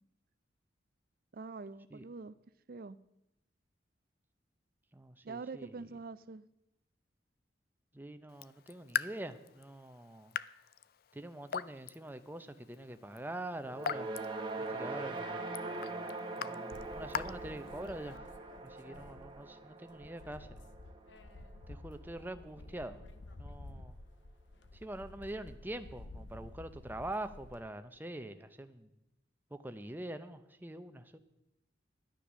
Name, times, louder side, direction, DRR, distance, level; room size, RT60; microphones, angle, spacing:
voice 1, 1.3-2.3 2.7-3.0 5.2-6.4, right 4 dB, 50° right, 16 dB, 0.4 m, -44 dB
voice 2, 4.9-5.8 7.9-10.3 11.1-14.1 14.6-15.5 16.4-18.2 18.6-20.5 21.7-23.0 23.4-24.0 24.7-28.9 29.5-31.2, right 1 dB, 10° right, 9 dB, 0.6 m, -44 dB
Raindrop / Drip, 8.3-18.2, left 8 dB, 55° left, 0.3 m, -43 dB
sound 1, 13.6-22.0, right 2 dB, 25° right, 1.3 m, -42 dB
sound 2, 16.7-19.6 19.9-27.6, left 2 dB, 75° left, 0.8 m, -51 dB
11.5 x 9.9 x 6.2 m, 0.85 s
head